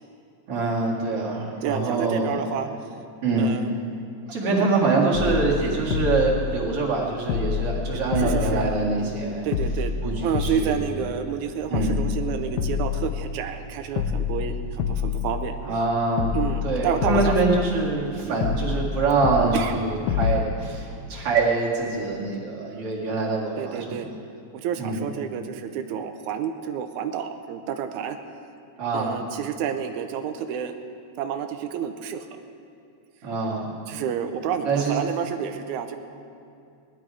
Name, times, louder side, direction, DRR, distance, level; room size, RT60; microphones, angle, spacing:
voice 1, 0.5-2.4 3.2-3.5 4.3-9.4 10.0-10.8 11.7-12.0 15.6-23.9 24.8-25.0 28.8-29.2 33.2-33.7 34.6-35.0, right 3 dB, 50° right, -4 dB, 3.0 m, -24 dB
voice 2, 1.6-2.7 3.4-3.7 8.2-8.6 9.4-9.9 10.2-15.6 16.3-17.4 18.3-18.5 19.5-19.7 23.6-24.1 24.5-28.2 28.9-30.8 31.2-32.4 33.9-36.0, right 8 dB, 90° right, 7 dB, 2.1 m, -29 dB
sound 1, 5.1-7.0 7.3-9.2 9.5-11.4 11.7-13.7 14.0-15.9 16.2-18.1 18.4-20.4, left 7 dB, 70° left, 1.7 m, -28 dB
18.0 x 11.5 x 4.9 m, 2.5 s
omnidirectional pair, 3.3 m